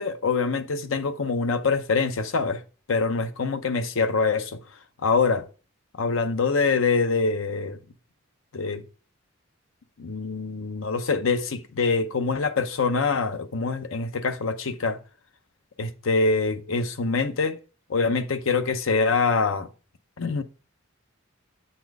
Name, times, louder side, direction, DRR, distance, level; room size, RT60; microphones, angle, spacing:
voice 1, 0.0-2.6 2.9-4.6 5.0-5.5 6.0-7.8 8.5-8.8 10.0-15.0 15.8-17.6 17.9-19.7 20.2-20.4, left 4 dB, 70° left, 0.7 m, -24 dB
7.9 x 4.3 x 4.6 m
head